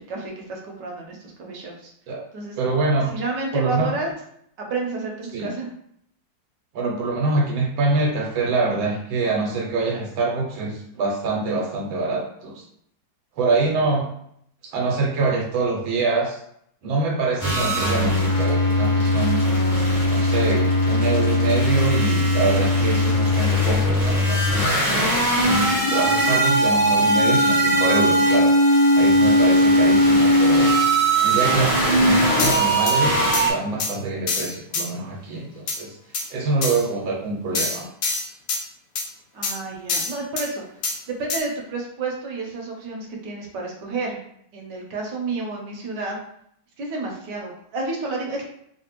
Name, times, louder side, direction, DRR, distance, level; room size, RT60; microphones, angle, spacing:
voice 1, 0.0-1.9 2.3-2.6 3.1-4.1 4.6-5.7 39.3-40.6 41.1-44.2 44.5-46.2 46.8-48.4, right 3 dB, 70° right, 0 dB, 1.3 m, -30 dB
voice 2, 2.6-3.1 3.5-3.9 5.3-5.5 6.7-12.6 13.4-14.1 14.6-16.4 16.8-19.4 20.1-30.8 31.2-36.0 36.3-37.8, right 3 dB, 90° right, 0 dB, 1.5 m, -25 dB
sound 1, 17.4-33.5, equal, 25° left, 1.2 m, -19 dB
sound 2, 32.4-33.0 33.3-33.5 33.8-33.9 34.3-34.9 35.7-35.8 36.1-36.3 36.6-36.8 37.5-38.6 38.9-39.1 39.4-39.5 39.9-40.5 40.8-41.0 41.3-41.4, left 4 dB, 75° left, 0.8 m, -25 dB
3.3 x 2.7 x 3.0 m, 0.70 s
omnidirectional pair, 2.1 m